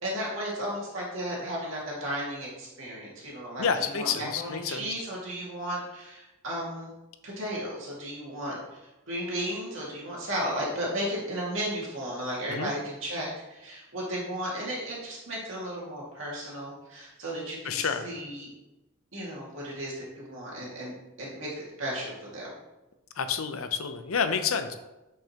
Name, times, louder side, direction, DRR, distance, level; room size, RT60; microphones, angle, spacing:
voice 1, 0.0-6.9 7.2-8.8 9.1-18.5 19.1-22.5, equal, 65° right, -5 dB, 2.2 m, -34 dB
voice 2, 3.6-4.9 12.5-12.7 17.6-18.1 23.2-24.8, left 6 dB, 80° left, 9 dB, 0.6 m, -29 dB
8.9 x 5.4 x 2.9 m, 1.0 s
head